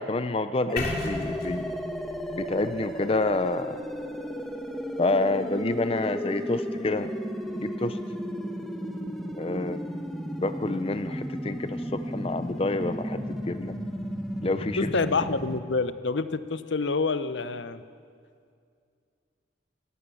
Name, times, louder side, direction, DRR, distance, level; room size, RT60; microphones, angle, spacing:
voice 1, 0.0-1.8 2.3-3.8 5.0-7.1 7.5-8.0 9.4-9.8 10.4-13.7 14.4-14.9, left 2 dB, 30° left, 11 dB, 0.6 m, -28 dB
sound 1, 0.7-15.6, equal, ahead, 1.3 m, -34 dB
sound 2, 0.8-4.7, left 2 dB, 55° left, 3.1 m, -37 dB
voice 2, 14.8-17.8, left 4 dB, 90° left, 13 dB, 0.9 m, -27 dB
22.5 x 17.5 x 7.0 m, 2.3 s
head